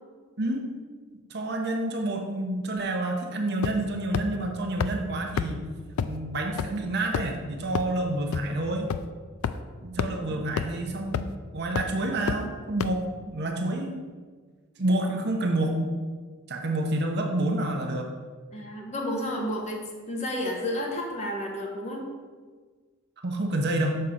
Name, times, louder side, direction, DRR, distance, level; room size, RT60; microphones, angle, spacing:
voice 1, 0.4-0.7 1.3-5.7 6.0-8.9 9.8-11.2 11.5-14.0 14.8-16.0 16.5-18.1 23.2-24.0, right 1 dB, 50° right, 2 dB, 0.8 m, -28 dB
sound 1, 3.6-3.9 4.1-4.2 4.8-4.9 5.4-5.5 6.0-6.1 6.6-6.7 7.1-7.4 7.7-7.8 8.3-8.4 8.9-9.0 9.4-9.5 10.0-10.1 10.6-10.7 11.1-11.4 11.8-11.9 12.3-12.4 12.8-12.9, left 7 dB, 75° left, 0.3 m, -27 dB
voice 2, 10.0-10.4 18.5-19.8 20.1-22.0, left 1 dB, 30° left, 0 dB, 1.0 m, -31 dB
6.6 x 3.8 x 5.8 m, 1.5 s
head